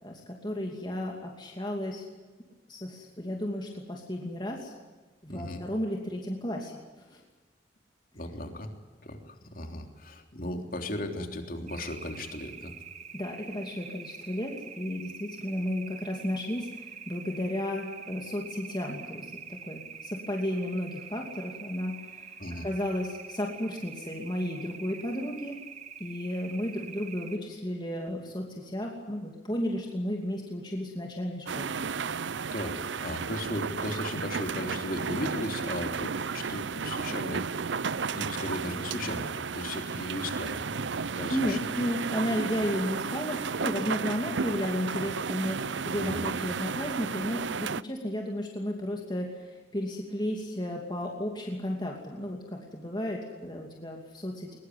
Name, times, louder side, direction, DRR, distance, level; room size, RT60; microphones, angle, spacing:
voice 1, 0.0-2.1 2.7-4.7 5.2-7.2 13.1-25.6 26.0-31.8 41.3-54.6, left 1 dB, 25° left, 1 dB, 2.7 m, -33 dB
voice 2, 5.3-5.6 8.1-8.7 9.0-12.7 22.4-22.7 32.5-37.5 38.1-40.8 41.2-41.6 46.1-46.3, left 1 dB, 50° left, 5 dB, 3.3 m, -36 dB
sound 1, 11.7-27.4, right 6 dB, 40° right, 1.7 m, -45 dB
sound 2, 31.4-47.8, right 5 dB, 80° right, 0.7 m, -33 dB
22.0 x 21.5 x 9.5 m, 1.3 s
head